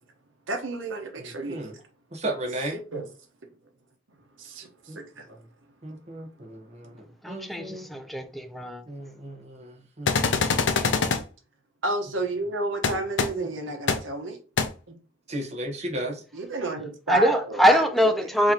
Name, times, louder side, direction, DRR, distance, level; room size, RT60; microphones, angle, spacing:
voice 1, 0.5-1.7 2.9-3.1 4.4-5.4 11.8-14.4 14.9-15.0 16.3-18.1 18.4-18.5, right 2 dB, 90° right, 1.0 m, -31 dB
voice 2, 1.2-1.7 2.1-2.8 4.9-5.0 5.8-7.9 8.9-10.5 10.8-11.2 13.4-13.5 15.3-16.2, right 1 dB, 35° right, 1.0 m, -35 dB
voice 3, 7.2-8.8 17.1-18.5, equal, ahead, 0.4 m, -23 dB
sound 1, 10.1-11.2 12.8-12.9 13.2-13.3 13.9-14.0 14.6-14.7, left 5 dB, 65° left, 0.5 m, -23 dB
4.7 x 2.8 x 2.8 m
head